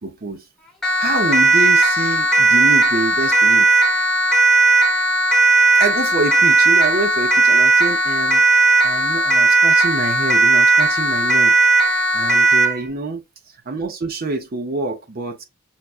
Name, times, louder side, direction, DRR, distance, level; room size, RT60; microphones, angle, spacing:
voice 1, 0.0-0.4 1.0-3.7 5.8-13.2 13.7-15.4, right 3 dB, 45° right, 0.7 m, -26 dB
Siren, 0.8-12.8, right 3 dB, ahead, 0.9 m, -16 dB
5.7 x 2.3 x 2.4 m
head